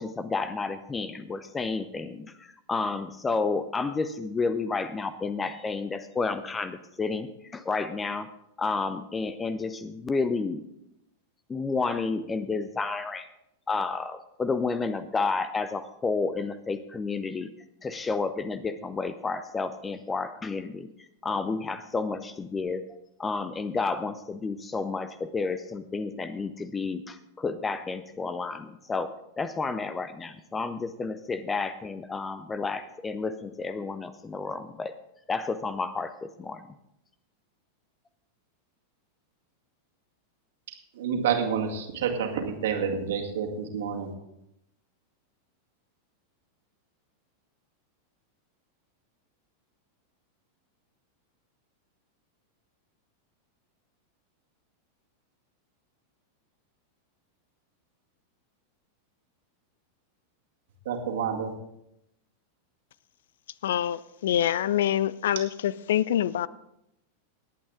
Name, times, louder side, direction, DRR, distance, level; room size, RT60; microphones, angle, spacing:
voice 1, 0.0-8.3 8.6-10.6 11.5-13.3 13.7-17.5 17.8-20.9 21.2-22.8 23.2-34.9 35.3-36.7, left 4 dB, 15° left, 0.6 m, -31 dB
voice 2, 40.9-44.1 60.9-61.5, right 7 dB, 60° right, 2.1 m, -28 dB
voice 3, 63.6-66.5, left 11 dB, 60° left, 0.4 m, -25 dB
19.5 x 8.7 x 3.7 m
figure-of-eight pair, 90°, 0 cm